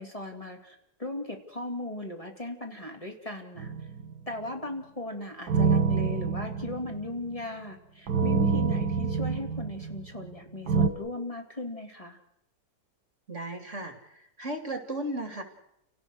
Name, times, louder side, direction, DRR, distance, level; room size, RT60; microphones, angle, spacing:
voice 1, 0.0-3.7 4.3-12.2, left 2 dB, 20° left, 2 dB, 3.3 m, -37 dB
sound 1, 3.6-4.2 5.5-7.3 8.1-10.3 10.7-10.9, right 5 dB, 75° right, 2.0 m, -26 dB
voice 2, 13.3-15.4, right 1 dB, 45° right, 7 dB, 3.1 m, -35 dB
30.0 x 18.5 x 6.4 m, 0.77 s
omnidirectional pair, 1.7 m